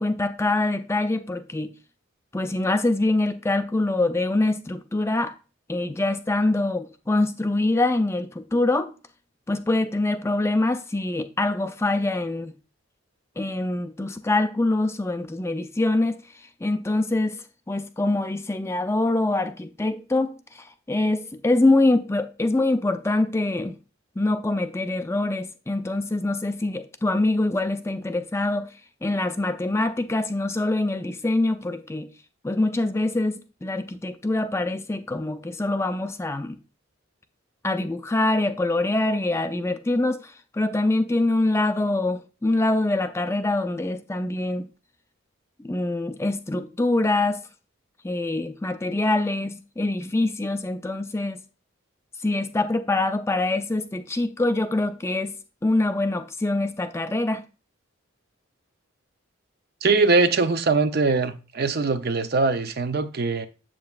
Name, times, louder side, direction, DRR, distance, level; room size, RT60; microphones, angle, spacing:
voice 1, 0.0-1.7 2.3-5.3 5.7-8.9 9.5-12.5 13.4-16.2 16.6-23.8 24.2-28.7 29.0-32.1 32.4-36.6 37.6-44.7 45.6-47.4 48.0-51.4 52.2-55.3 55.6-57.4, left 2 dB, 15° left, 0.4 m, -24 dB
voice 2, 59.8-63.5, right 3 dB, 50° right, 0.5 m, -22 dB
7.6 x 7.5 x 2.4 m
head